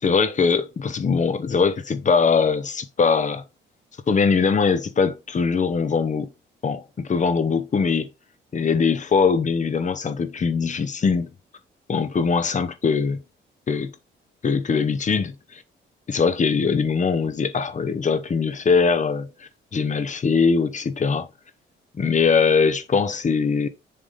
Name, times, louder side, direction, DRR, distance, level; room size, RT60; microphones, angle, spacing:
voice 1, 0.0-3.4 4.1-6.3 6.6-8.1 8.5-11.3 11.9-13.2 13.7-13.9 14.4-15.6 16.1-21.3 22.0-23.7, left 5 dB, 40° left, 1.0 m, -21 dB
6.8 x 3.5 x 4.1 m
cardioid pair, 90°, 20 cm